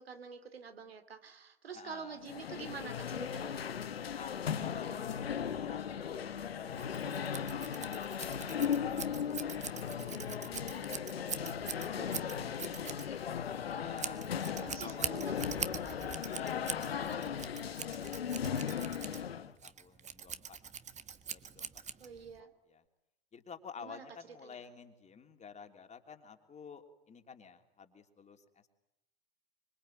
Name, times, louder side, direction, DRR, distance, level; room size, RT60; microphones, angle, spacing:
voice 1, 0.0-3.7 11.7-12.3 14.6-15.3 22.0-22.5 23.8-24.0 24.4-24.6, right 5 dB, 75° right, 8 dB, 2.9 m, -47 dB
voice 2, 1.7-2.2 4.1-10.2 10.9-11.6 11.9-12.1 12.3-13.2 13.7-14.3 14.7-15.2 16.3-17.1 19.6-20.6 21.3-21.7 22.7-22.8 23.3-28.7, left 6 dB, 25° left, 6 dB, 3.2 m, -51 dB
sound 1, 2.2-19.5, left 8 dB, 75° left, 1.3 m, -37 dB
Scissors, 6.8-22.4, right 7 dB, 25° right, 1.6 m, -43 dB
25.5 x 25.5 x 9.1 m, 0.85 s
figure-of-eight pair, 80°, 30 cm